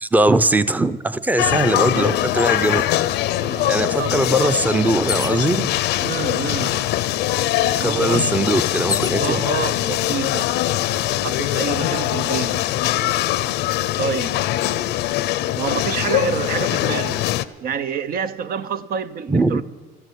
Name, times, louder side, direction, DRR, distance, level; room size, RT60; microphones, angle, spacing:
voice 1, 0.0-2.8 3.1-3.2 3.7-5.7 7.8-9.4 19.3-19.6, right 2 dB, 10° right, 0.7 m, -20 dB
sound 1, 1.4-17.5, left 14 dB, 85° left, 0.7 m, -22 dB
voice 2, 3.4-4.6 6.0-6.9 7.6-8.4 9.2-10.6 11.2-12.6 14.0-14.5 15.6-17.2 17.6-19.6, right 7 dB, 60° right, 0.8 m, -28 dB
sound 2, 5.1-5.5 6.4-6.5 6.8-9.2 10.0-10.5, left 6 dB, 25° left, 0.4 m, -30 dB
13.5 x 12.5 x 8.3 m
cardioid pair, 110°, 17 cm